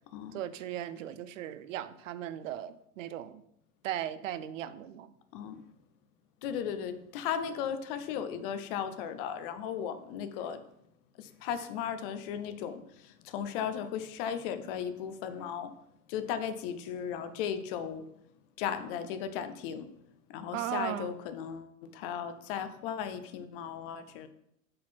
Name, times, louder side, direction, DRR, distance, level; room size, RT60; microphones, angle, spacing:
voice 1, 0.3-3.4 3.8-5.1 20.5-21.1, right 11 dB, 55° right, 14 dB, 0.6 m, -37 dB
voice 2, 5.3-5.6 6.4-10.6 11.2-15.7 16.1-18.1 18.6-19.9 20.3-24.3, left 8 dB, 35° left, 10 dB, 0.6 m, -36 dB
6.4 x 4.2 x 4.3 m, 0.75 s
figure-of-eight pair, 95°, 46 cm